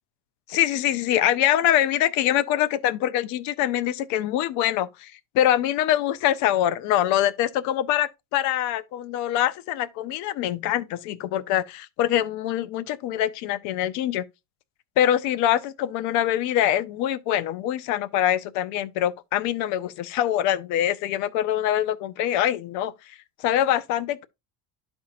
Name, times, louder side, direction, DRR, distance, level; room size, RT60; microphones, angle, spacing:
voice 1, 0.5-14.2 15.0-22.9 23.4-24.3, left 11 dB, 50° left, 0.5 m, -24 dB
12.5 x 4.4 x 2.4 m
cardioid pair, 180°, 39 cm